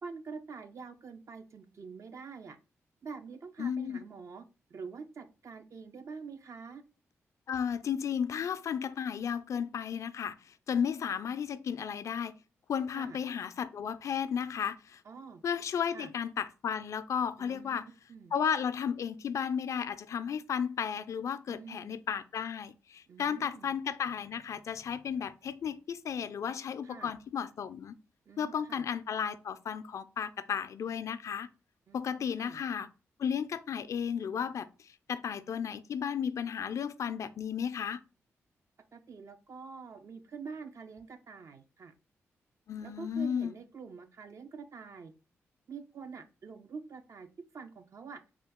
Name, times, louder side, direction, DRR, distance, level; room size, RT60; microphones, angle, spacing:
voice 1, 0.0-2.6 3.0-4.4 4.7-6.8 12.9-13.2 15.0-15.4 15.9-16.1 17.4-17.8 18.1-18.3 21.5-22.0 23.1-23.7 26.8-27.1 28.3-28.8 31.9-32.6 37.0-37.3 38.9-41.9 42.8-45.1 45.7-47.3 47.5-48.2, right 5 dB, 60° right, 0.5 m, -46 dB
voice 2, 3.6-4.0 7.5-10.4 10.7-12.3 12.7-15.0 15.4-17.8 18.3-28.0 28.4-31.5 31.9-32.9 33.2-38.0 42.7-43.5, left 7 dB, 65° left, 0.3 m, -34 dB
3.7 x 2.3 x 3.5 m
supercardioid pair, 50°, 6 cm